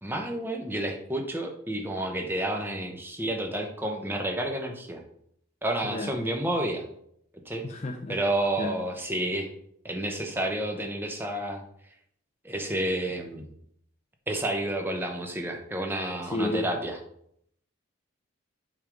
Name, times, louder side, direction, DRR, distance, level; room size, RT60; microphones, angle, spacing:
voice 1, 0.0-5.0 5.6-6.8 7.5-7.6 8.1-9.5 9.8-11.6 12.4-13.5 14.3-17.0, right 1 dB, 10° right, 3 dB, 0.9 m, -30 dB
voice 2, 7.6-8.1 8.6-8.7 16.3-16.7, left 2 dB, 30° left, 2 dB, 0.6 m, -30 dB
7.8 x 3.6 x 5.2 m, 0.70 s
head